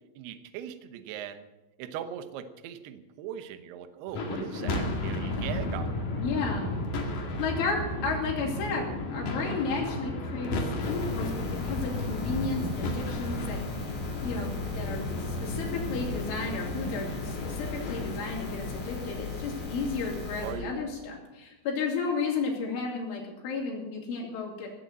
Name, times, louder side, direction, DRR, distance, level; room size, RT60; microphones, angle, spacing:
voice 1, 0.2-1.5 1.8-6.6 6.9-7.0 20.4-20.7, right 9 dB, 75° right, 10 dB, 2.6 m, -40 dB
sound 1, 4.1-20.5, left 1 dB, 50° left, 3.0 m, -34 dB
voice 2, 6.2-6.7 7.4-13.9 14.2-24.7, left 4 dB, 80° left, -2 dB, 5.7 m, -33 dB
sound 2, 10.8-20.5, left 5 dB, 35° left, 6.1 m, -38 dB
17.5 x 8.4 x 7.7 m, 1.1 s
omnidirectional pair, 5.5 m